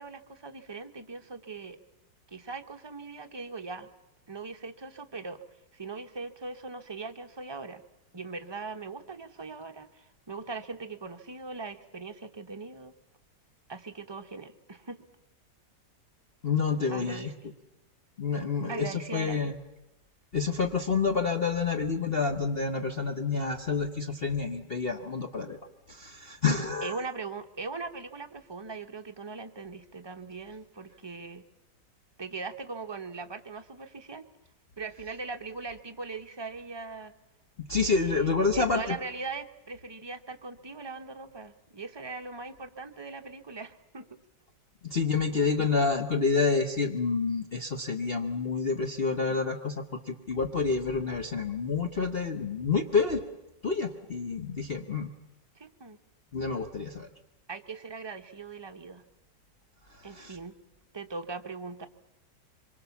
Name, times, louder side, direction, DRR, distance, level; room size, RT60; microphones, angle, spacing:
voice 1, 0.0-1.8 2.3-3.9 4.3-5.4 5.7-7.8 8.1-12.9 13.7-15.0 16.9-17.3 18.7-19.6 26.8-31.4 32.2-34.3 34.8-37.1 37.8-44.1 45.4-45.5 49.3-49.4 55.6-56.0 57.5-59.0 60.0-60.5 60.9-61.9, right 4 dB, 20° right, 6 dB, 0.7 m, -40 dB
voice 2, 16.4-17.3 18.2-19.6 20.3-25.6 25.9-26.9 37.7-39.0 44.8-49.7 50.1-53.2 53.6-55.1 56.3-57.1 60.1-60.4, left 4 dB, 40° left, 4 dB, 1.1 m, -28 dB
25.5 x 23.0 x 7.1 m, 0.91 s
omnidirectional pair, 1.9 m